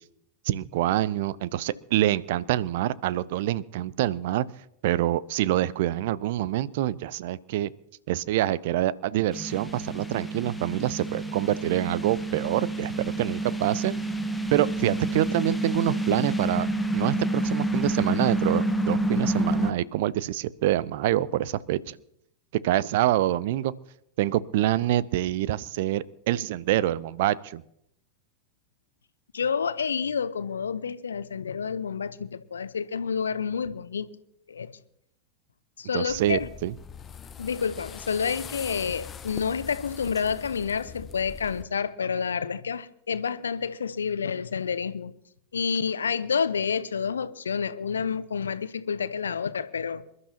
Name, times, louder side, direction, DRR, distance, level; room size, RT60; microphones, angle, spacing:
voice 1, 0.5-4.5 4.8-7.7 8.1-13.9 14.5-16.7 16.9-22.0 22.6-23.7 24.2-27.6 35.9-36.7, right 14 dB, 50° right, 0.6 m, -26 dB
sound 1, 9.3-19.7, right 1 dB, 5° left, 1.1 m, -28 dB
voice 2, 29.3-34.1 34.5-34.7 35.8-36.5 37.4-45.1 45.5-50.0, left 6 dB, 70° left, 0.8 m, -29 dB
sound 2, 36.1-41.6, left 7 dB, 25° left, 0.7 m, -42 dB
27.0 x 12.5 x 2.9 m
figure-of-eight pair, 90°, 0 cm